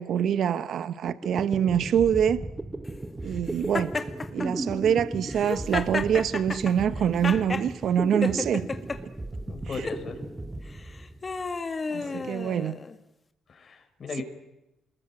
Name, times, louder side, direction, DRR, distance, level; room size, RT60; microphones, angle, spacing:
voice 1, 0.0-2.4 3.2-3.9 4.3-8.7 9.7-9.9 11.9-12.8, right 8 dB, 70° right, 1.0 m, -25 dB
sound 1, 1.1-11.5, right 2 dB, 15° right, 1.6 m, -36 dB
Laughter, 3.7-4.5 5.3-7.7 8.2-9.0 9.7-10.0 10.7-13.0, left 4 dB, 30° left, 2.1 m, -32 dB
voice 2, 9.5-10.2 11.4-11.5 12.0-12.5 13.5-14.2, left 5 dB, 45° left, 5.7 m, -38 dB
26.5 x 21.0 x 9.0 m
cardioid pair, 90°, 0 cm